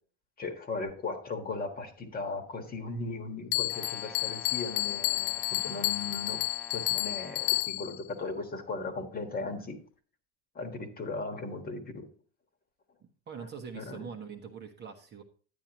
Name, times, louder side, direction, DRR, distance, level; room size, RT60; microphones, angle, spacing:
voice 1, 0.4-6.4 6.7-9.8 10.5-12.1 13.4-13.5 13.7-14.1, left 3 dB, 20° left, 6 dB, 1.5 m, -37 dB
Bell, 3.5-8.0, left 21 dB, 60° left, 0.5 m, -31 dB
Brass instrument, 3.7-7.7, equal, ahead, 0.4 m, -49 dB
voice 2, 13.0-15.2, right 6 dB, 25° right, 4 dB, 1.0 m, -43 dB
10.5 x 9.0 x 2.9 m, 0.41 s
cardioid pair, 155°, 40 cm